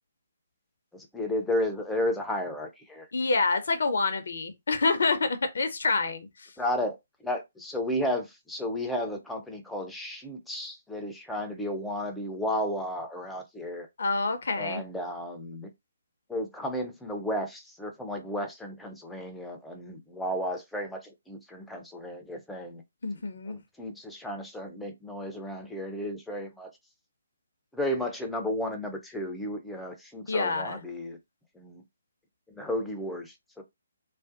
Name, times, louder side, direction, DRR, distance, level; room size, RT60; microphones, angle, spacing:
voice 1, 0.9-3.1 6.6-7.0 7.2-13.9 14.6-15.7 16.3-22.8 23.5-26.7 27.7-31.2 31.6-31.8 32.5-33.6, left 1 dB, 5° left, 0.4 m, -33 dB
voice 2, 3.1-6.5 14.0-14.8 23.0-23.6 30.3-30.8, left 3 dB, 55° left, 0.5 m, -27 dB
2.5 x 2.1 x 2.4 m
figure-of-eight pair, 135°, 0 cm